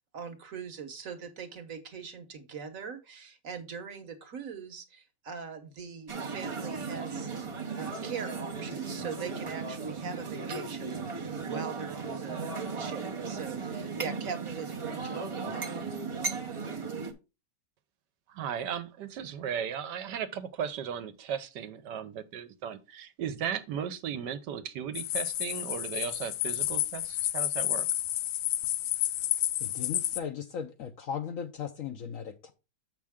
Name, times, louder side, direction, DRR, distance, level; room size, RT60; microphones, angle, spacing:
voice 1, 0.1-7.5 7.8-12.4 12.7-15.7, right 6 dB, 55° right, 1.4 m, -41 dB
sound 1, 6.1-17.1, right 4 dB, 35° right, 0.5 m, -36 dB
voice 2, 18.3-27.9, right 8 dB, 75° right, 1.4 m, -36 dB
sound 2, 24.9-30.2, left 13 dB, 85° left, 1.3 m, -30 dB
voice 3, 29.6-32.5, left 7 dB, 65° left, 0.9 m, -37 dB
7.5 x 6.0 x 3.5 m
omnidirectional pair, 1.8 m